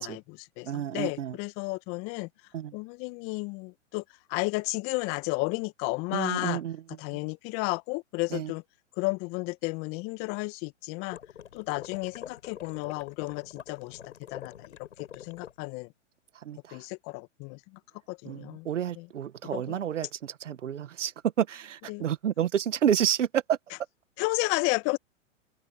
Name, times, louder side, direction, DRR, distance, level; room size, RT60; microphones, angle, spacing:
voice 1, 0.0-2.3 2.7-4.0 4.3-6.6 7.0-8.6 9.0-11.2 11.5-14.0 14.3-14.8 15.2-15.9 16.7-17.6 18.1-18.7 19.0-19.1 19.5-19.8 21.9-22.1 24.2-25.0, left 26 dB, 35° left, 1.8 m, -32 dB
voice 2, 0.7-1.4 2.5-2.7 6.1-6.8 8.3-8.5 16.4-16.8 18.3-21.1 21.4-23.6, right 9 dB, 75° right, 1.7 m, -29 dB
sound 1, 11.1-15.5, left 9 dB, 70° left, 6.3 m, -45 dB
hypercardioid pair, 125°, 37 cm